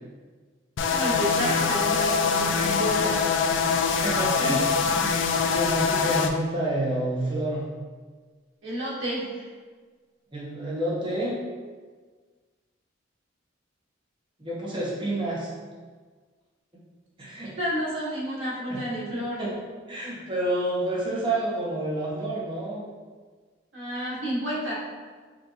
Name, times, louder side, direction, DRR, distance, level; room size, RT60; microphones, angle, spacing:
sound 1, 0.8-6.3, left 5 dB, 65° left, 0.3 m, -24 dB
voice 1, 0.9-3.2 8.6-9.5 17.6-19.4 23.7-24.7, equal, 80° right, -7 dB, 1.4 m, -30 dB
voice 2, 4.0-5.2 5.5-7.6 10.3-11.4 14.4-15.5 17.2-17.5 18.7-18.8 19.4-19.5 19.9-22.8, right 1 dB, 25° right, -6 dB, 1.0 m, -29 dB
5.0 x 2.6 x 2.9 m, 1.5 s
head